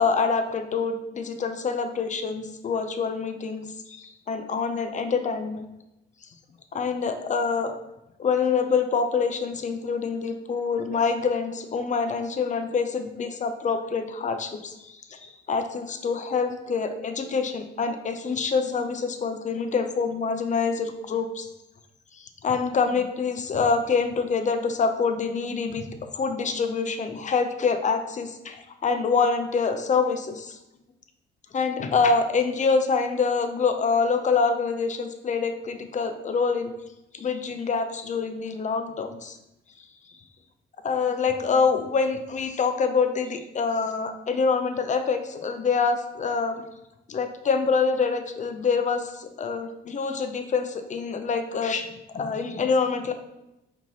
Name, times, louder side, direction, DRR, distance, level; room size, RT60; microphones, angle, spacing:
voice 1, 0.0-5.7 6.7-7.7 8.2-21.5 22.2-25.9 26.1-30.6 31.5-36.7 37.1-39.4 40.8-46.7 47.1-51.9 52.1-53.1, left 5 dB, 40° left, 7 dB, 0.6 m, -26 dB
4.5 x 2.9 x 4.0 m, 0.92 s
cardioid pair, 90°, 20 cm